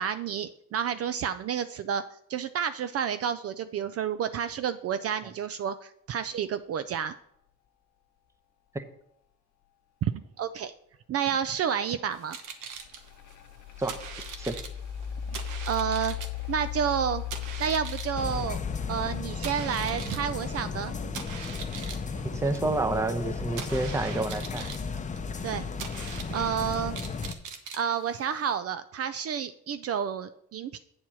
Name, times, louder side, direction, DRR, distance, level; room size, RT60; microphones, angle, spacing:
voice 1, 0.0-2.0 2.3-7.2 10.0-10.1 10.4-10.7 11.1-12.4 15.3-16.2 16.5-17.2 17.6-18.6 18.9-20.9 25.4-25.6 26.3-27.0 27.7-30.8, right 8 dB, 50° right, 12 dB, 0.4 m, -30 dB
sound 1, 12.1-28.6, right 6 dB, 85° right, 1.1 m, -43 dB
sound 2, 12.8-19.2, left 11 dB, 70° left, 0.8 m, -36 dB
sound 3, 18.1-27.3, left 5 dB, 25° left, 0.6 m, -35 dB
voice 2, 22.3-24.7, right 2 dB, 10° right, 8 dB, 0.8 m, -29 dB
8.6 x 4.4 x 6.1 m, 0.74 s
cardioid pair, 90°, 30 cm